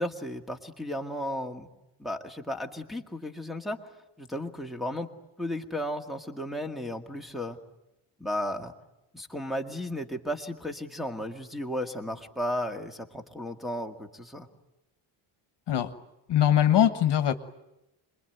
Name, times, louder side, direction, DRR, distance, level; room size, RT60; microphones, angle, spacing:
voice 1, 0.0-1.7 2.0-3.8 4.2-5.1 5.4-7.6 8.2-8.7 9.1-14.5, left 1 dB, ahead, 5 dB, 1.9 m, -34 dB
voice 2, 16.3-17.3, left 10 dB, 55° left, 10 dB, 1.4 m, -22 dB
26.5 x 22.0 x 9.3 m, 0.93 s
cardioid pair, 150°, 49 cm